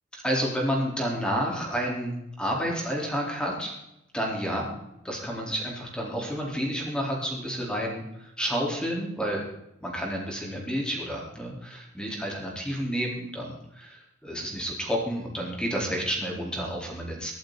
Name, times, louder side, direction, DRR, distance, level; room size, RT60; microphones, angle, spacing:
voice 1, 0.1-3.8 4.1-4.7 5.0-9.4 9.8-17.3, equal, 5° left, -2 dB, 4.1 m, -30 dB
24.0 x 8.6 x 4.1 m, 0.83 s
head